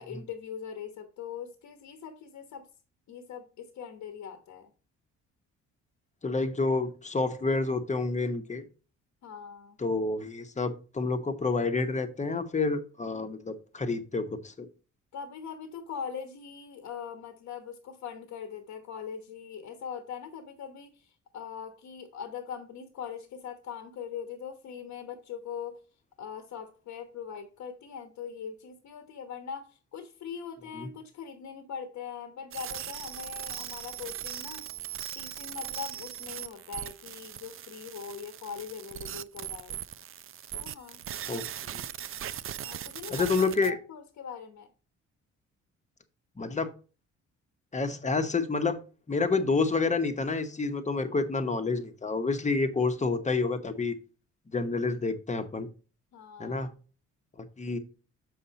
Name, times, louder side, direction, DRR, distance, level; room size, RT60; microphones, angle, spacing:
voice 1, 0.0-2.7 3.1-4.7 9.2-9.8 15.1-25.8 26.2-34.6 35.1-39.8 40.5-41.0 42.6-43.3 43.6-44.7 56.1-56.6, left 7 dB, 75° left, 6 dB, 1.2 m, -41 dB
voice 2, 6.2-8.6 9.8-14.7 30.8-30.9 41.3-41.8 43.1-43.8 46.4-46.7 47.7-48.8 49.1-54.0 54.5-55.7 56.4-56.7 57.6-57.8, left 3 dB, 25° left, 8 dB, 1.1 m, -29 dB
sound 1, 32.5-43.7, right 10 dB, 45° right, 0.5 m, -39 dB
6.7 x 5.5 x 4.1 m, 0.36 s
cardioid pair, 90°, 30 cm